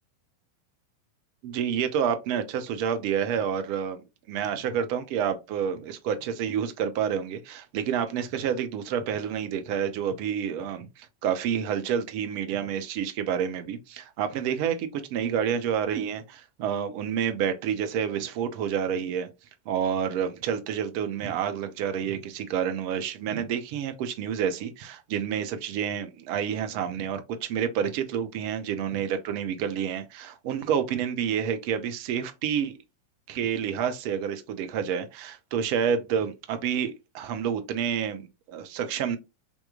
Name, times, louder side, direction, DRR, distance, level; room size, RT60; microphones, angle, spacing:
voice 1, 1.4-19.3 19.7-32.7 33.3-39.2, right 8 dB, 45° right, 0.8 m, -29 dB
5.3 x 3.0 x 2.4 m
figure-of-eight pair, 90°, 0 cm